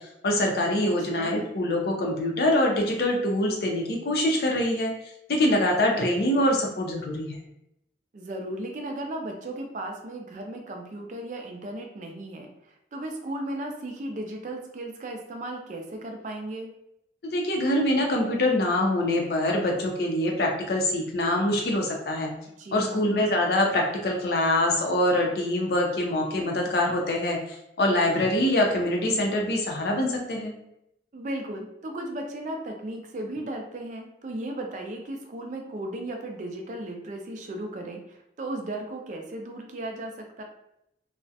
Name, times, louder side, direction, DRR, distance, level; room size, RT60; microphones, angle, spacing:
voice 1, 0.0-4.9 5.3-7.4 17.2-22.3 22.7-30.5, left 1 dB, 55° left, 1 dB, 0.5 m, -24 dB
voice 2, 1.1-1.4 8.1-16.7 22.6-23.1 31.1-40.4, right 1 dB, 40° right, 3 dB, 0.4 m, -36 dB
2.3 x 2.0 x 2.6 m, 0.80 s
head